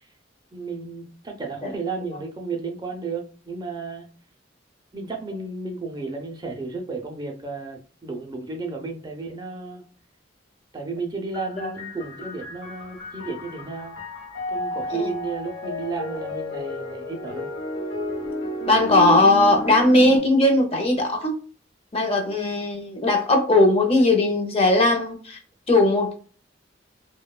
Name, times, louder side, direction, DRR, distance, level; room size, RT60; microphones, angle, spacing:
voice 1, 0.5-4.1 4.9-9.8 10.7-14.0 14.5-17.5, right 4 dB, 25° right, 3 dB, 0.4 m, -33 dB
sound 1, 11.3-20.2, left 1 dB, 85° left, 1.0 m, -32 dB
voice 2, 18.7-21.4 21.9-25.4 25.7-26.2, left 2 dB, 35° left, 3 dB, 0.6 m, -19 dB
2.6 x 2.1 x 2.3 m, 0.40 s
head